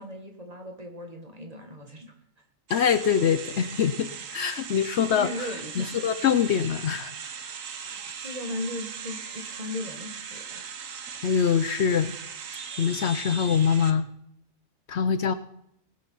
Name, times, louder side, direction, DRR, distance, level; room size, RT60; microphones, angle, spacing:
voice 1, 0.0-2.1 5.1-5.9 7.9-10.6, left 1 dB, 30° right, 4 dB, 1.7 m, -37 dB
voice 2, 2.7-5.5 5.8-7.1 11.2-12.1 12.8-14.0 14.9-15.3, left 7 dB, 65° left, 12 dB, 0.9 m, -24 dB
sound 1, 2.7-13.9, right 6 dB, 90° right, 1.4 m, -39 dB
19.0 x 6.7 x 5.6 m, 0.73 s
omnidirectional pair, 1.3 m